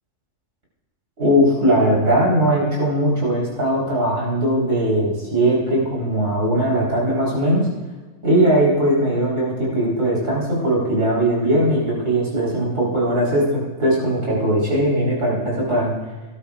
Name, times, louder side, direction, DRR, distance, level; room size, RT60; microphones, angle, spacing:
voice 1, 1.2-7.7 8.2-15.9, right 1 dB, 80° right, -5 dB, 4.4 m, -19 dB
18.0 x 12.5 x 2.4 m, 1.3 s
omnidirectional pair, 1.3 m